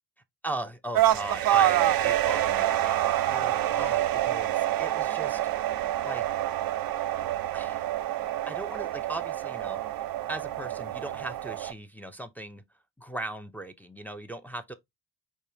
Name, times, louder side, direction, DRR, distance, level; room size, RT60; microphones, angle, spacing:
voice 1, 0.4-5.4 6.0-6.2 7.5-7.9 8.5-9.8 10.3-12.6 13.0-14.7, right 1 dB, 5° left, 0.6 m, -38 dB
sound 1, 0.9-11.7, right 13 dB, 50° right, 0.5 m, -27 dB
4.4 x 3.3 x 2.7 m
hypercardioid pair, 45°, 47 cm